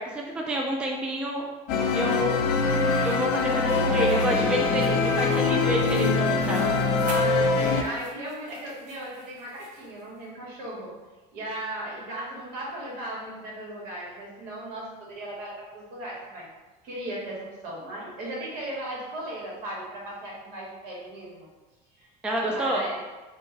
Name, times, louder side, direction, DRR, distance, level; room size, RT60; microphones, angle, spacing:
voice 1, 0.0-1.4 1.9-2.4 3.0-6.7 22.2-22.8, equal, 5° right, -1 dB, 0.3 m, -28 dB
sound 1, 1.7-7.8, left 4 dB, 75° left, 0.4 m, -23 dB
sound 2, 2.4-10.0, right 3 dB, 50° right, 0.6 m, -44 dB
voice 2, 6.7-10.9 11.3-16.5 16.8-21.5 22.0-22.1 22.4-23.0, right 1 dB, 70° right, -4 dB, 1.5 m, -37 dB
3.8 x 2.3 x 3.9 m, 1.2 s
cardioid pair, 150°, 16 cm